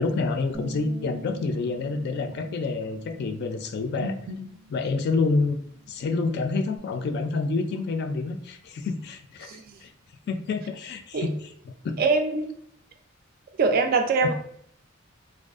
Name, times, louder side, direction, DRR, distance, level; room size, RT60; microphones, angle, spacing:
voice 1, 0.0-4.1 4.7-5.6 5.9-9.5 9.8-9.9 10.3-11.3 11.8-12.0 14.2-14.3, left 3 dB, 55° left, 7 dB, 0.3 m, -28 dB
Bass guitar, 0.5-6.8, right 3 dB, 5° right, 0.6 m, -47 dB
voice 2, 4.0-4.4 9.5-9.7 11.1-11.3 12.0-12.5 13.6-14.3, right 4 dB, 50° right, 6 dB, 0.3 m, -24 dB
2.5 x 2.3 x 2.4 m, 0.68 s
head